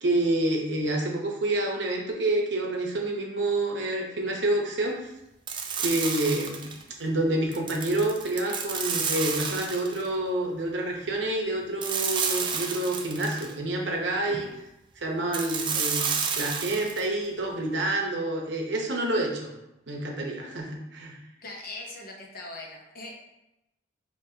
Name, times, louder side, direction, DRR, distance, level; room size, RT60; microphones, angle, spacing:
voice 1, 0.0-5.1 5.8-6.7 7.0-14.5 15.0-16.1 16.4-19.5 19.9-21.1, right 1 dB, 65° right, 0 dB, 0.9 m, -28 dB
sound 1, 5.5-6.8 7.5-10.1 11.8-13.5 15.3-17.0, right 6 dB, 25° right, 0.4 m, -30 dB
voice 2, 14.2-14.5 21.4-23.1, left 2 dB, 50° left, -1 dB, 0.8 m, -40 dB
6.0 x 2.9 x 2.8 m, 0.89 s
head